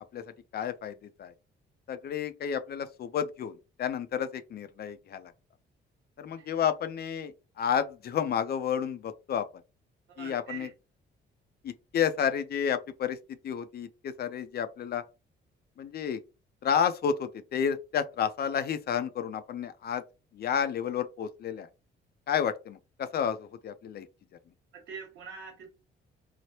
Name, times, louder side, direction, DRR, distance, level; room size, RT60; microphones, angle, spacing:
voice 1, 0.5-1.3 1.9-5.3 6.2-9.5 10.2-10.7 11.6-13.2 13.4-15.0 15.8-16.2 16.6-20.0 20.3-21.7 22.3-24.1, left 8 dB, 55° left, 0.4 m, -31 dB
voice 2, 10.1-10.7 24.7-25.7, right 6 dB, 75° right, 1.1 m, -44 dB
3.2 x 2.0 x 2.8 m
cardioid pair, 90°, 20 cm